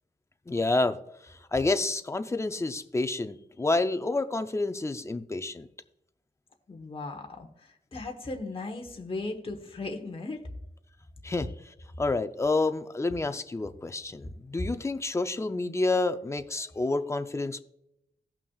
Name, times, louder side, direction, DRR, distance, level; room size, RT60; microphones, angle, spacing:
voice 1, 0.5-1.0 1.2-5.7 11.2-17.6, left 2 dB, 15° left, 9 dB, 0.5 m, -29 dB
voice 2, 6.7-10.5, left 3 dB, 35° left, 2 dB, 1.1 m, -37 dB
17.0 x 5.9 x 2.4 m, 0.82 s
wide cardioid pair, 125°, 17 cm